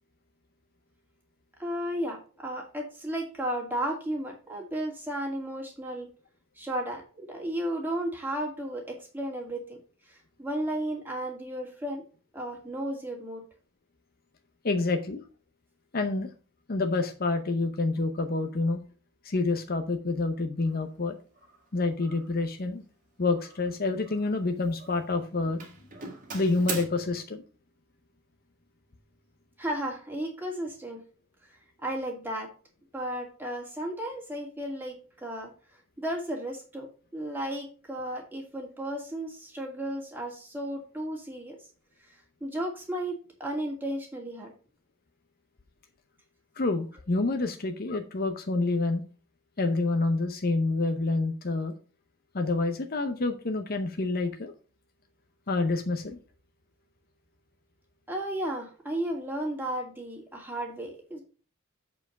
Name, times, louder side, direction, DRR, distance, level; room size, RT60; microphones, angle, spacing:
voice 1, 1.6-6.1 6.6-9.8 10.1-12.0 12.3-13.4 29.6-31.0 31.8-32.5 32.9-35.5 36.0-36.9 37.1-41.6 42.1-44.5 58.1-61.2, right 1 dB, 10° right, 0 dB, 2.3 m, -34 dB
voice 2, 14.6-15.2 15.9-16.3 16.7-18.8 19.2-21.2 21.7-22.8 23.2-25.7 26.3-27.4 46.6-49.0 49.6-51.7 52.3-54.5 55.5-56.2, left 3 dB, 45° left, 6 dB, 0.7 m, -28 dB
Doorbell, 20.6-20.8 21.4-21.7 22.0-22.4 23.4-24.4 24.7-25.2 25.6-26.9, right 4 dB, 40° right, 1.7 m, -41 dB
7.7 x 4.7 x 5.8 m, 0.37 s
head